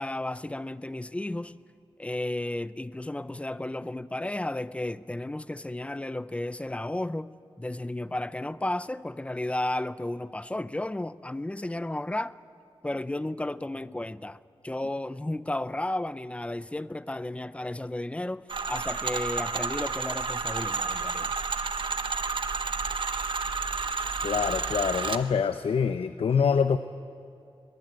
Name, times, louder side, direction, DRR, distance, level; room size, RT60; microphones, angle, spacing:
voice 1, 0.0-1.6 2.0-12.4 12.8-21.3, left 1 dB, 10° left, 0.5 m, -33 dB
sound 1, 18.5-25.2, right 4 dB, 60° right, 1.2 m, -31 dB
voice 2, 24.2-26.8, left 6 dB, 75° left, 0.7 m, -25 dB
22.5 x 22.0 x 9.2 m
wide cardioid pair, 125°, 10 cm